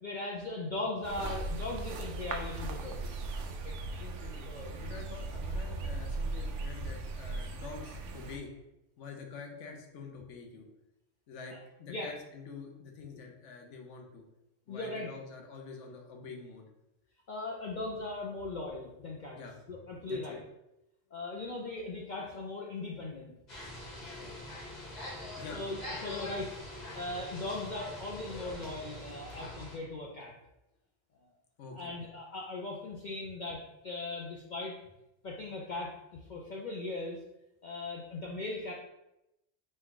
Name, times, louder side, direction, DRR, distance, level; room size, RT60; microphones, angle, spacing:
voice 1, 0.0-3.1 3.5-3.7 4.5-4.8 11.5-11.6 11.9-12.1 14.7-15.1 17.3-19.4 19.7-20.4 21.1-23.3 25.5-26.5 26.9-30.3 31.7-34.8 35.2-37.2 37.6-38.7, left 2 dB, 55° left, -2 dB, 0.5 m, -39 dB
sound 1, 1.0-8.4, right 2 dB, 75° right, 0.9 m, -38 dB
voice 2, 4.0-8.5 9.0-10.7 11.3-14.2 14.7-16.7 19.3-19.6 20.1-20.4 25.4-25.6 31.6-32.1, left 4 dB, 75° left, 2 dB, 1.1 m, -47 dB
sound 2, 23.5-29.8, left 1 dB, 35° left, 1.3 m, -43 dB
5.1 x 2.4 x 3.8 m, 0.90 s
omnidirectional pair, 1.3 m